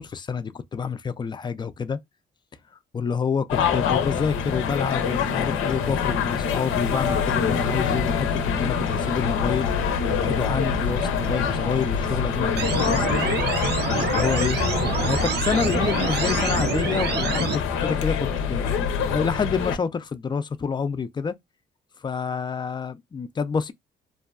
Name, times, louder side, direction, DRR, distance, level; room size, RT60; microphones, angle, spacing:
voice 1, 0.0-2.0 2.9-13.3 13.8-14.6 15.0-21.3 22.0-23.7, left 6 dB, 25° left, 0.3 m, -28 dB
sound 1, 3.5-19.8, left 6 dB, 85° left, 0.5 m, -25 dB
sound 2, 10.3-16.4, right 6 dB, 80° right, 1.0 m, -42 dB
sound 3, 12.6-17.6, right 6 dB, 55° right, 0.6 m, -27 dB
2.6 x 2.2 x 2.3 m
cardioid pair, 90°, 20 cm